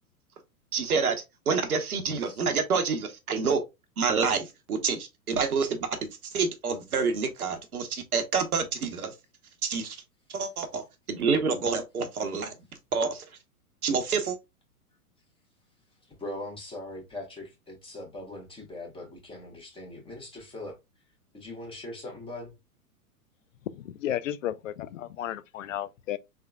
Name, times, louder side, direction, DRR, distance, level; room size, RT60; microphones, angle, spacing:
voice 1, 0.7-3.6 4.0-5.9 6.2-9.1 9.6-10.0 10.3-12.6 12.9-13.3 13.8-14.4, right 5 dB, 70° right, 1.0 m, -28 dB
voice 2, 16.2-20.7 21.3-22.5, left 1 dB, 10° left, 1.2 m, -40 dB
voice 3, 23.7-26.2, left 11 dB, 60° left, 0.5 m, -33 dB
3.6 x 3.5 x 2.2 m
figure-of-eight pair, 105°, 45 cm